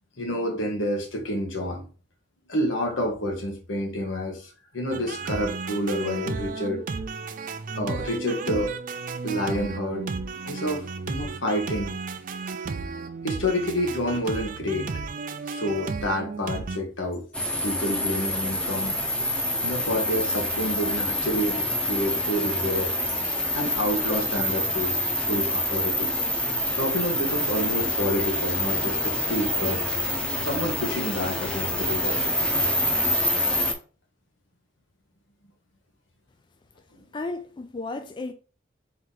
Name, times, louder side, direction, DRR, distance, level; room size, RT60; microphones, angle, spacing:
voice 1, 0.2-1.9 2.5-6.8 7.7-8.8 9.2-10.1 10.4-11.9 13.2-15.0 15.5-17.3 17.6-19.0 19.6-25.0 25.3-26.1 26.8-30.0 30.4-32.3, equal, 80° left, 1.3 m, -29 dB
sound 1, 4.9-16.8, right 4 dB, 45° right, 0.4 m, -33 dB
sound 2, 17.3-33.7, left 1 dB, 5° left, 0.7 m, -26 dB
voice 2, 37.1-38.3, left 2 dB, 25° left, 0.3 m, -33 dB
4.5 x 2.8 x 3.8 m
head